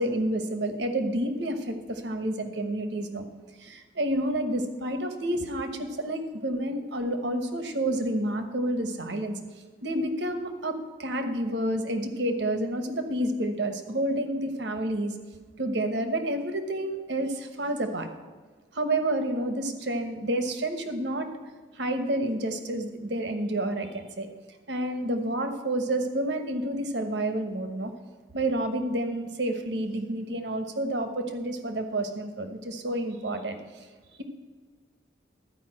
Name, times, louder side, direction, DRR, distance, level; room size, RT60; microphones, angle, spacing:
voice 1, 0.0-3.2 3.6-9.4 9.8-15.1 15.6-18.1 18.7-21.3 21.7-24.3 24.7-27.9 28.3-33.6, right 1 dB, 70° right, 7 dB, 1.2 m, -29 dB
12.5 x 5.2 x 7.6 m, 1.4 s
head